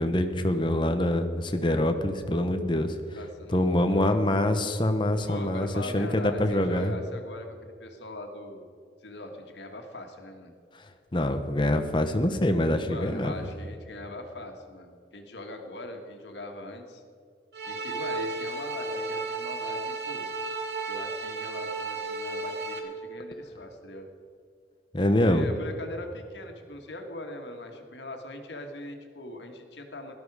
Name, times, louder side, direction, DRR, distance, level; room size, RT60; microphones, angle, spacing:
voice 1, 0.0-2.9 3.5-6.9 11.1-13.3 24.9-25.5, left 1 dB, 30° left, 7 dB, 0.9 m, -25 dB
voice 2, 3.2-4.1 5.3-8.7 9.0-10.5 12.9-17.0 17.6-20.3 20.9-24.1 25.2-30.1, left 1 dB, 85° left, 4 dB, 1.8 m, -41 dB
sound 1, 17.5-22.8, right 3 dB, 65° right, 1.6 m, -33 dB
16.5 x 12.5 x 4.9 m, 2.3 s
head